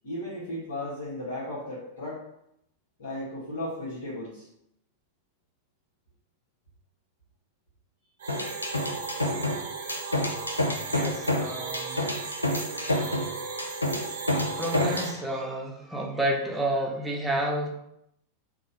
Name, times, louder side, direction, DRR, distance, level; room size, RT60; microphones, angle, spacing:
voice 1, 0.0-2.2 3.0-4.5, left 1 dB, 65° left, -10 dB, 1.5 m, -35 dB
sound 1, 8.2-15.1, right 5 dB, 60° right, 0.6 m, -36 dB
sound 2, 8.3-15.2, left 1 dB, 80° left, 0.5 m, -28 dB
voice 2, 10.9-12.0 14.6-17.8, right 1 dB, 5° right, -1 dB, 0.8 m, -30 dB
3.8 x 2.5 x 4.1 m, 0.79 s
figure-of-eight pair, 90°, 0 cm